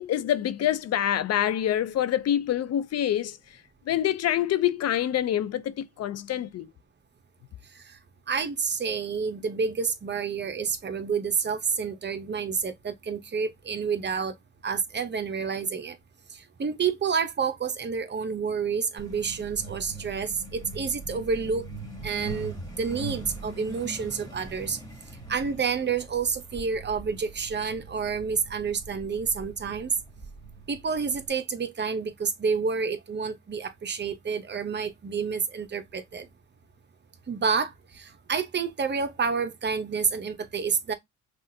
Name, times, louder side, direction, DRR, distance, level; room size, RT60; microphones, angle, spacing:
voice 1, 0.0-3.4 3.9-6.7, left 11 dB, 55° left, 0.5 m, -26 dB
voice 2, 8.3-14.3 14.6-16.0 16.3-21.7 22.0-24.8 25.3-29.9 30.7-36.3 37.3-40.9, right 5 dB, 35° right, 0.9 m, -29 dB
Truck, 19.0-31.3, right 3 dB, 10° left, 1.9 m, -41 dB
5.7 x 2.5 x 2.7 m
cardioid pair, 90°, 30 cm